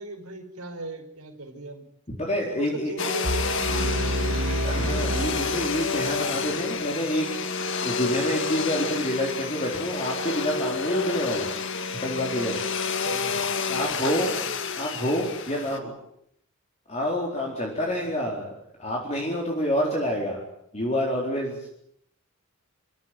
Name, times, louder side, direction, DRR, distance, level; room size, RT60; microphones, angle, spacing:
voice 1, 0.0-1.9 2.5-4.0 4.4-4.7 13.0-13.5 13.8-14.4 17.9-18.1, right 2 dB, 85° right, 5 dB, 5.1 m, -37 dB
voice 2, 2.1-2.9 4.6-11.5 11.9-12.6 13.7-14.3 14.8-15.9 16.9-18.5 18.8-20.4 20.7-21.7, equal, 30° left, -1 dB, 4.2 m, -28 dB
Domestic sounds home sounds, 3.0-15.8, left 5 dB, 55° left, 1.8 m, -29 dB
sound 1, 3.2-6.3, equal, 65° right, 2.2 m, -28 dB
29.0 x 14.5 x 9.7 m, 0.75 s
head